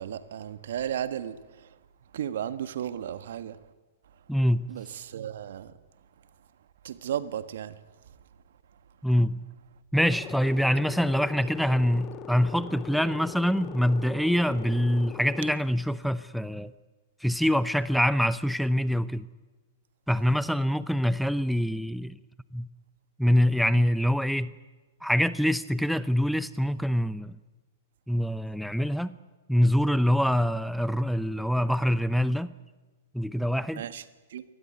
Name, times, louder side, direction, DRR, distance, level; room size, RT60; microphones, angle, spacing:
voice 1, 0.0-1.7 2.1-3.6 4.7-5.7 6.8-7.7 33.8-34.0 34.3-34.4, right 10 dB, 65° right, 1.5 m, -34 dB
voice 2, 4.3-4.7 9.0-9.4 9.9-16.7 17.2-19.3 20.1-22.1 22.5-22.7 23.2-24.5 25.0-27.4 28.1-29.2 29.5-32.5 33.1-33.8, equal, ahead, 0.7 m, -25 dB
sound 1, 9.9-15.5, left 10 dB, 30° left, 2.0 m, -41 dB
24.5 x 19.5 x 9.5 m
hypercardioid pair, 110°, 0 cm